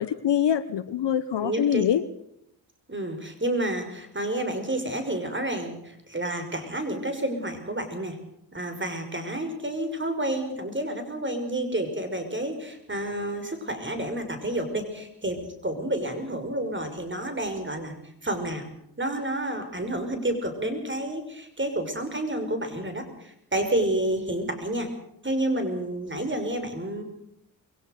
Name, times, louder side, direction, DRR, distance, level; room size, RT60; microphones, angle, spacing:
voice 1, 0.0-2.0, left 9 dB, 55° left, 14 dB, 1.2 m, -24 dB
voice 2, 1.4-1.8 2.9-8.2 8.5-17.9 18.2-18.7 19.0-24.9 25.2-27.0, right 1 dB, 20° right, 8 dB, 5.8 m, -30 dB
22.5 x 17.5 x 6.7 m, 0.76 s
supercardioid pair, 60°, 50 cm